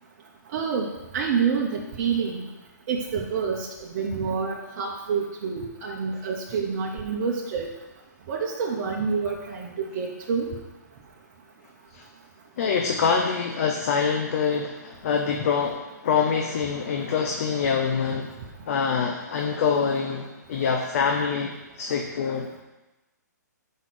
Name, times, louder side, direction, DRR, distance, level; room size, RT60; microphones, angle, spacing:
voice 1, 0.5-1.7 2.0-2.4 2.9-3.7 3.9-7.7 8.3-10.5, right 6 dB, 45° right, -2 dB, 1.0 m, -27 dB
voice 2, 12.6-18.3 18.6-22.6, left 6 dB, 50° left, 3 dB, 0.8 m, -25 dB
5.9 x 5.3 x 6.1 m, 1.1 s
hypercardioid pair, 140°, 10 cm